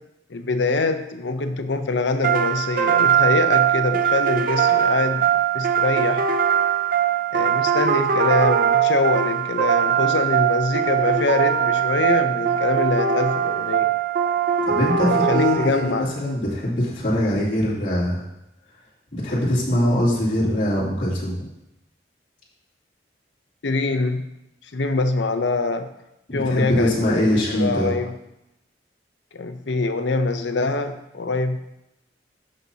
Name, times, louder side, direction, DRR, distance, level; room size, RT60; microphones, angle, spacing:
voice 1, 0.3-6.2 7.3-13.9 15.1-16.1 23.6-24.2 24.7-25.9 26.3-28.1 29.3-31.6, left 3 dB, 85° left, 8 dB, 0.7 m, -24 dB
sound 1, 2.2-16.1, right 8 dB, 50° right, 0.5 m, -21 dB
voice 2, 14.7-18.2 19.1-21.5 26.3-27.9, left 1 dB, 45° left, -10 dB, 2.8 m, -22 dB
14.5 x 5.4 x 2.8 m, 0.87 s
head